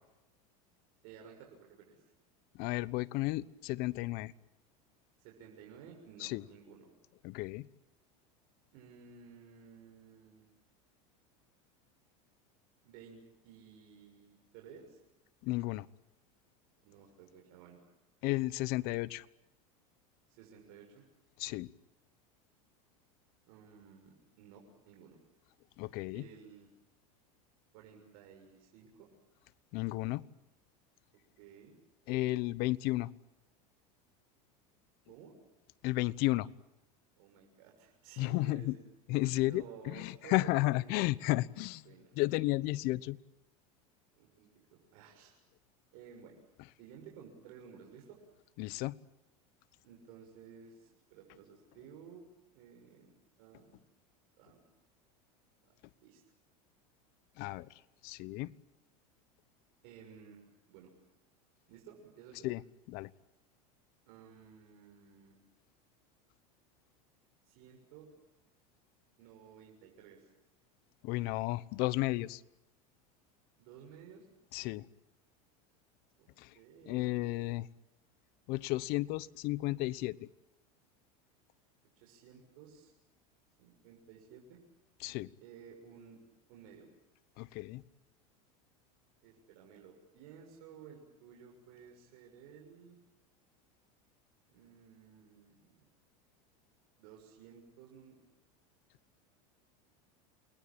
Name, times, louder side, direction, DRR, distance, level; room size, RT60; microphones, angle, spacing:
voice 1, 1.0-2.0 5.2-6.9 8.7-10.4 12.8-15.0 16.8-17.8 20.3-21.0 23.4-25.2 26.1-26.7 27.7-29.1 31.4-31.8 35.1-35.3 37.2-38.8 39.4-41.0 41.8-42.2 44.2-45.3 45.9-46.4 46.8-48.2 49.8-52.2 52.5-53.1 53.4-53.8 54.4-54.6 55.6-55.7 56.0-56.2 59.8-60.4 60.7-60.9 61.7-62.5 64.1-65.3 67.4-68.1 69.2-70.3 73.6-74.3 76.2-76.3 76.5-77.3 82.0-82.9 83.6-84.6 85.4-86.2 86.5-86.9 89.2-93.0 94.5-95.8 97.0-98.2, right 7 dB, 65° right, 1 dB, 6.8 m, -55 dB
voice 2, 2.6-4.3 6.2-6.4 7.2-7.7 15.4-15.9 18.2-19.2 21.4-21.7 25.8-26.2 29.7-30.2 32.1-33.1 35.8-36.5 38.2-38.8 39.1-41.8 42.2-43.2 48.6-49.0 57.4-57.7 58.0-58.5 62.4-62.6 62.9-63.1 71.0-72.4 74.5-74.9 76.4-76.5 76.9-77.7 78.5-80.2 85.0-85.3 87.4-87.8, left 19 dB, 60° left, 19 dB, 1.0 m, -33 dB
29.0 x 20.5 x 8.8 m, 0.95 s
supercardioid pair, 115°, 18 cm